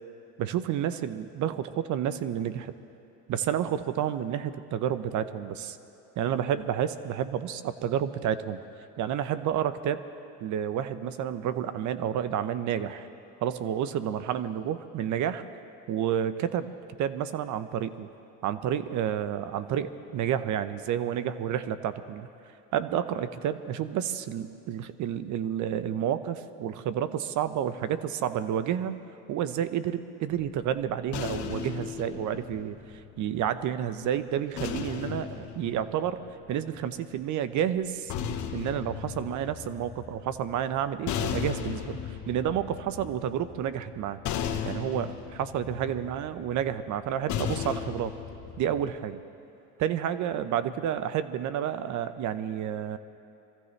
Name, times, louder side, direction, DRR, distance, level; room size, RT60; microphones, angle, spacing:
voice 1, 0.4-2.7 3.3-5.8 6.2-8.6 9.0-10.0 10.4-13.1 13.4-15.4 15.9-16.7 17.0-18.1 18.4-22.3 22.7-29.0 29.3-32.8 33.2-36.2 36.5-38.1 38.5-44.2 44.6-48.1 48.6-49.2 49.8-53.0, right 9 dB, 50° right, 13 dB, 0.8 m, -30 dB
sound 1, 30.3-33.6 34.6-36.8 37.8-48.9, left 8 dB, 50° left, 1.2 m, -36 dB
24.0 x 15.0 x 3.3 m, 2.8 s
supercardioid pair, 105°, 38 cm